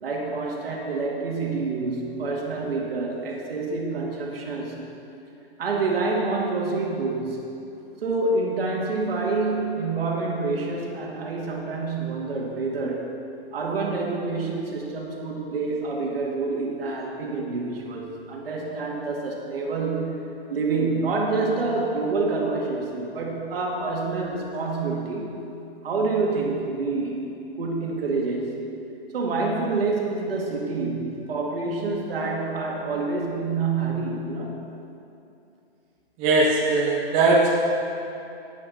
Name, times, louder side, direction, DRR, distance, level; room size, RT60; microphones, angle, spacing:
voice 1, 0.0-4.8 5.6-7.4 8.0-13.1 13.5-25.4 25.8-27.2 27.6-28.5 29.1-34.6, right 3 dB, 65° right, -1 dB, 2.6 m, -27 dB
voice 2, 36.2-37.5, right 3 dB, 20° right, -4 dB, 1.1 m, -19 dB
16.5 x 8.8 x 4.4 m, 2.7 s
hypercardioid pair, 160°, 32 cm